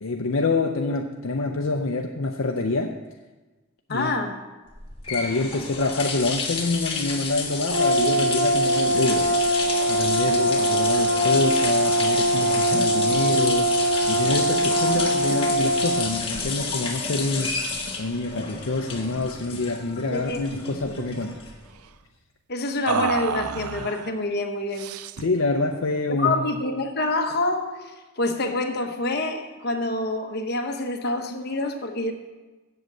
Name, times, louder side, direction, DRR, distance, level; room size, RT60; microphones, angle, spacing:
voice 1, 0.0-3.0 3.9-4.1 5.1-9.6 9.9-13.8 14.1-17.6 18.0-21.4 25.2-26.4, left 3 dB, 65° left, 3 dB, 0.6 m, -26 dB
voice 2, 3.9-4.4 20.1-20.6 20.8-21.0 22.5-24.9 26.1-32.1, left 2 dB, 45° left, 4 dB, 1.0 m, -27 dB
sound 1, 4.7-21.8, left 4 dB, 25° left, 1.4 m, -30 dB
Brass instrument, 7.7-16.1, right 1 dB, 70° right, 1.9 m, -22 dB
sound 2, 19.5-19.7 20.0-20.2 20.5-21.3 22.9-24.1 24.7-25.4, right 7 dB, 85° right, 0.4 m, -30 dB
7.9 x 7.7 x 7.5 m, 1.2 s
head